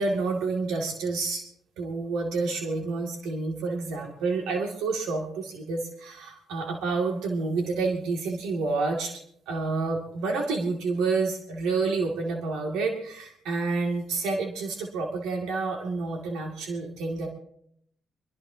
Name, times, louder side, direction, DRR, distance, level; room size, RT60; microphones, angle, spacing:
voice 1, 0.0-1.4 1.8-17.3, right 3 dB, 85° right, 1 dB, 2.2 m, -29 dB
22.5 x 22.5 x 2.8 m, 0.69 s
supercardioid pair, 70°, 0 cm